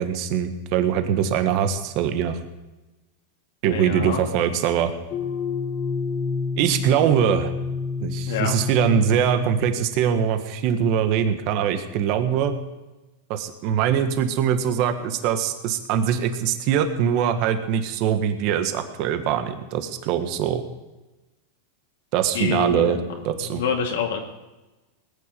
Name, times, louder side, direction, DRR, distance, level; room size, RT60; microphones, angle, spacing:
voice 1, 0.0-2.4 3.6-4.9 6.6-7.5 8.0-12.5 13.3-20.6 22.1-23.0 23.2-23.6, right 8 dB, 50° right, 8 dB, 1.6 m, -22 dB
voice 2, 3.6-4.2 8.3-8.5 22.3-23.1 23.5-24.2, left 6 dB, 80° left, 1 dB, 2.3 m, -26 dB
sound 1, 5.1-10.3, left 4 dB, 40° left, 2.9 m, -29 dB
20.0 x 9.0 x 5.3 m, 1.1 s
supercardioid pair, 130°, 0 cm